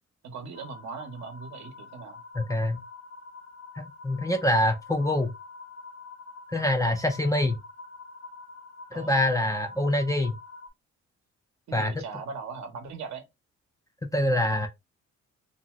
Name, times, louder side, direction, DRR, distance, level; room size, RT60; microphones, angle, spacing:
voice 1, 0.2-2.2 8.9-9.1 11.7-13.2, right 5 dB, 65° right, 0.9 m, -39 dB
sound 1, 0.5-10.7, left 4 dB, 65° left, 0.9 m, -46 dB
voice 2, 2.3-2.8 3.8-5.3 6.5-7.6 8.9-10.3 11.7-11.9 14.1-14.7, left 1 dB, 10° left, 0.4 m, -25 dB
2.6 x 2.3 x 2.9 m
cardioid pair, 90°, 30 cm